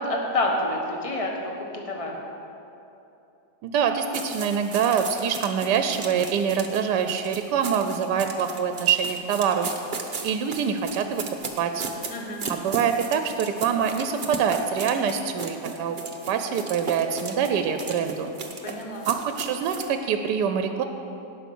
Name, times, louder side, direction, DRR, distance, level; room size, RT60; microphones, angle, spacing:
voice 1, 0.0-2.1 12.1-12.4 18.6-19.1, left 1 dB, 20° left, 0 dB, 1.3 m, -28 dB
voice 2, 3.6-9.7 10.2-11.2 11.6-11.8 12.5-16.0 16.3-18.3 19.1-20.8, right 7 dB, 85° right, 7 dB, 1.2 m, -25 dB
sound 1, 4.1-19.9, right 4 dB, 40° right, 0.8 m, -36 dB
17.5 x 5.9 x 6.0 m, 2.8 s
omnidirectional pair, 1.8 m